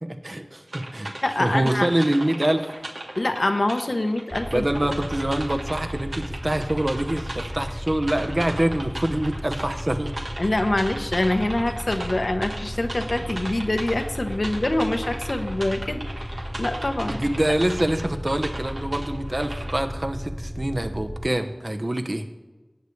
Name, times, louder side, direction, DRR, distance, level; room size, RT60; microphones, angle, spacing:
voice 1, 0.0-1.1 1.4-2.6 4.5-10.1 17.1-22.3, right 1 dB, 40° right, 6 dB, 1.0 m, -25 dB
sound 1, 0.7-19.8, right 1 dB, 85° right, 1.5 m, -37 dB
voice 2, 1.2-1.9 3.2-4.7 10.4-16.0 16.6-17.2, left 1 dB, 65° left, 6 dB, 0.9 m, -25 dB
sound 2, 4.3-21.3, equal, 5° left, 0.6 m, -34 dB
18.0 x 8.2 x 3.3 m, 1.2 s
wide cardioid pair, 50°, 0 cm